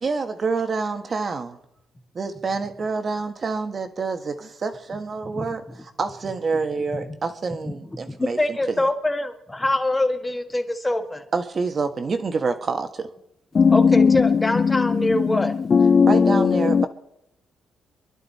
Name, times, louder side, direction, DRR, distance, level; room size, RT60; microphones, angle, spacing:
voice 1, 0.0-1.6 2.1-8.8 11.3-13.1 16.1-16.9, right 4 dB, 40° right, 1.5 m, -27 dB
voice 2, 7.9-11.2 13.7-15.5, left 1 dB, 15° left, 1.8 m, -24 dB
voice 3, 13.5-16.9, left 5 dB, 40° left, 0.6 m, -18 dB
25.5 x 11.5 x 4.3 m
cardioid pair, 90°, 0 cm